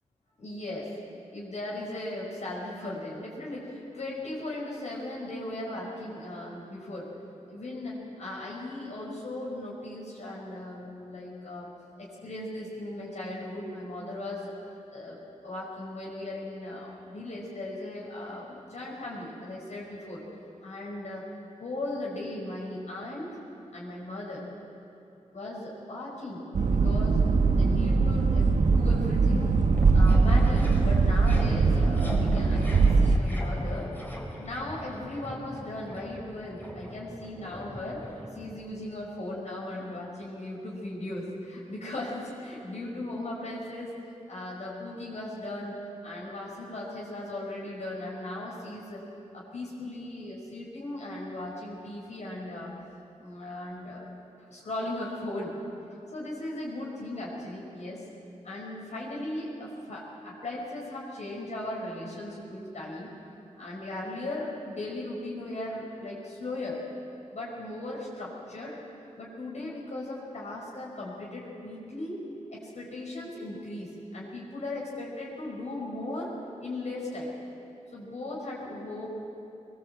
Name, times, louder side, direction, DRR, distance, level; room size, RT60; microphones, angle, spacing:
voice 1, 0.4-0.9 1.3-7.1 7.5-11.7 12.0-14.5 14.9-20.2 20.6-21.3 21.6-23.3 23.7-24.4 25.3-29.6 29.9-33.9 34.4-38.0 38.3-43.9 44.3-45.7 46.0-49.0 49.3-52.7 53.2-54.1 54.5-55.5 56.1-58.0 58.4-63.1 63.6-66.8 67.3-68.8 69.2-72.2 72.5-76.3 76.6-77.4 77.9-79.1, left 1 dB, 65° left, -5 dB, 5.8 m, -37 dB
sound 1, 26.5-33.2, right 4 dB, 75° right, 1.3 m, -22 dB
sound 2, 29.4-38.8, left 1 dB, 15° left, 3.8 m, -40 dB
22.5 x 22.0 x 8.2 m, 2.7 s
wide cardioid pair, 130°, 13 cm